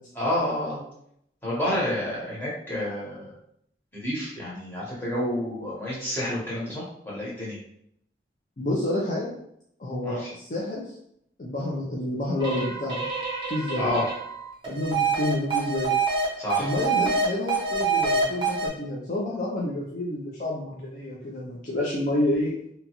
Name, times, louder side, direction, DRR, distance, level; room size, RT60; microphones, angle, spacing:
voice 1, 0.2-0.8 1.4-3.3 3.9-7.6 10.0-10.3 13.8-14.1 16.4-16.7, left 1 dB, 10° left, -7 dB, 1.0 m, -29 dB
voice 2, 8.6-9.4 9.8-10.8 11.4-13.0 13.5-13.9 14.7-15.9 16.6-22.5, left 1 dB, 45° left, -5 dB, 0.5 m, -29 dB
sound 1, 12.4-16.2 16.5-18.7, right 4 dB, 30° right, 0.7 m, -26 dB
2.9 x 2.3 x 2.9 m, 0.72 s
head